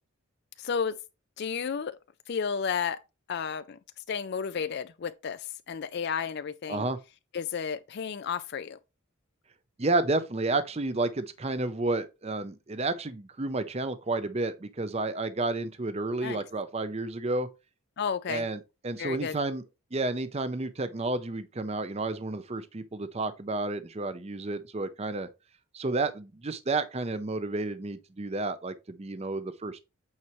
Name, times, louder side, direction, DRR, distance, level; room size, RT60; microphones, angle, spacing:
voice 1, 0.6-1.0 1.4-2.0 2.3-3.0 3.3-3.8 4.1-6.9 7.3-8.8 16.2-16.4 18.0-18.4 19.0-19.4, left 6 dB, 50° left, 0.4 m, -32 dB
voice 2, 9.8-17.5 18.3-19.6 19.9-25.3 25.7-29.8, right 2 dB, 30° right, 0.5 m, -31 dB
8.7 x 4.6 x 3.0 m
head